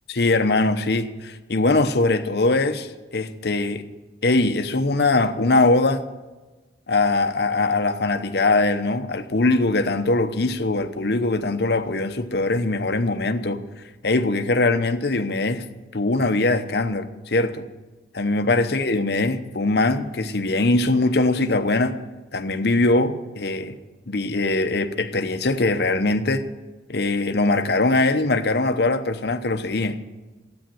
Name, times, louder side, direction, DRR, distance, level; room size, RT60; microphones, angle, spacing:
voice 1, 0.1-3.8 4.2-6.0 6.9-13.6 14.0-15.6 15.9-17.6 18.1-22.0 22.3-23.8 24.1-26.4 26.9-30.0, left 2 dB, 60° left, 0.9 m, -21 dB
13.0 x 9.5 x 7.7 m
head